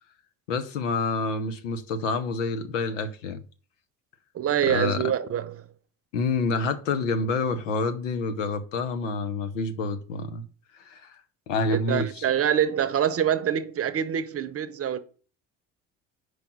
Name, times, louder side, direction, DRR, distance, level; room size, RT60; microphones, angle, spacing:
voice 1, 0.5-3.4 4.7-5.1 6.1-10.4 10.7-11.2 11.5-12.2, left 3 dB, 90° left, 0.9 m, -28 dB
voice 2, 4.3-5.5 11.7-15.0, right 9 dB, 40° right, 0.8 m, -25 dB
5.1 x 4.7 x 6.0 m
hypercardioid pair, 65°, 37 cm